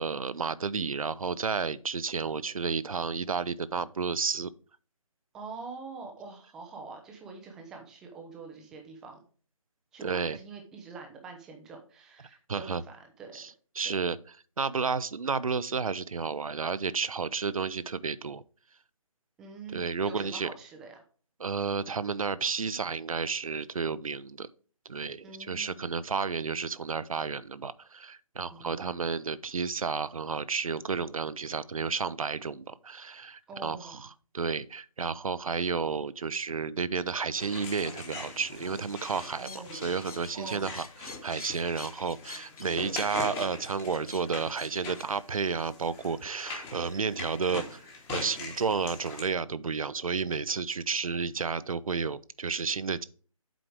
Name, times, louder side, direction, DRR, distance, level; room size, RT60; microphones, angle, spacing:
voice 1, 0.0-4.5 10.0-10.4 12.5-12.8 13.3-13.5 13.8-14.2 14.6-18.4 19.7-20.5 21.4-24.5 24.9-47.8 48.1-53.0, right 5 dB, 70° right, 0.6 m, -31 dB
voice 2, 5.3-9.2 9.9-13.4 13.8-13.9 19.4-21.0 25.2-25.9 28.5-29.0 33.5-34.1 39.4-39.9 40.3-40.8, right 4 dB, 5° right, 0.4 m, -45 dB
sound 1, 37.4-49.2, left 3 dB, 15° left, 1.2 m, -42 dB
sound 2, 39.2-45.1, left 4 dB, 80° left, 0.8 m, -47 dB
7.8 x 4.8 x 4.8 m
figure-of-eight pair, 150°, 18 cm